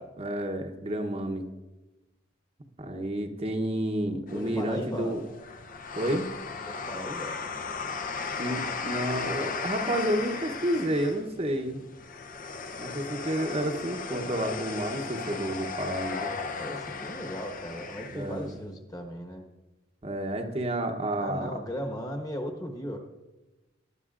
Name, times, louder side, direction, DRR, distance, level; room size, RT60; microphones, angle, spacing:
voice 1, 0.2-1.5 2.8-5.2 6.0-6.3 8.4-11.8 12.8-16.3 18.1-18.5 20.0-21.5, right 1 dB, 30° right, 3 dB, 0.8 m, -30 dB
sound 1, 4.3-18.5, left 4 dB, 40° left, 0.6 m, -36 dB
voice 2, 4.3-5.2 6.6-7.4 13.9-14.3 16.6-19.4 21.2-23.0, equal, 20° left, 4 dB, 1.2 m, -37 dB
19.0 x 11.5 x 2.5 m, 1.1 s
head